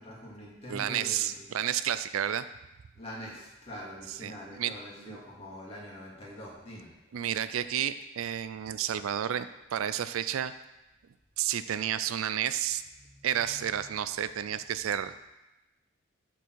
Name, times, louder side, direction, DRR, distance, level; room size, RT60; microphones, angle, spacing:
voice 1, 0.0-1.4 2.9-6.9 13.0-14.0 14.5-14.6, equal, 30° left, -4 dB, 2.1 m, -45 dB
voice 2, 0.7-2.5 4.2-4.7 5.0-5.2 7.1-10.5 11.4-12.8 13.2-15.2, right 10 dB, 80° right, 13 dB, 0.4 m, -31 dB
12.0 x 4.5 x 4.6 m, 0.97 s
head